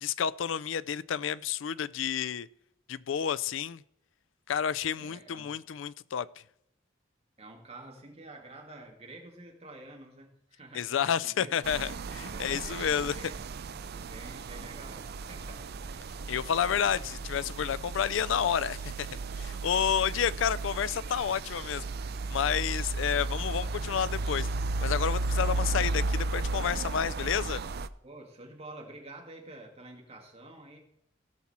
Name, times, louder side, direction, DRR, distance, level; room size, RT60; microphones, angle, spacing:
voice 1, 0.0-2.5 2.9-3.8 4.5-6.3 10.7-13.1 16.3-21.9 22.3-24.5 24.8-27.6, left 8 dB, 70° left, 0.4 m, -30 dB
voice 2, 4.9-5.5 7.4-11.6 12.3-13.4 13.9-15.7 20.1-20.5 28.0-30.8, right 2 dB, 35° right, 2.2 m, -49 dB
sound 1, 11.6-27.9, right 3 dB, 55° right, 0.5 m, -34 dB
Bowed string instrument, 17.6-21.7, right 2 dB, 70° right, 1.3 m, -62 dB
16.5 x 6.0 x 4.3 m
head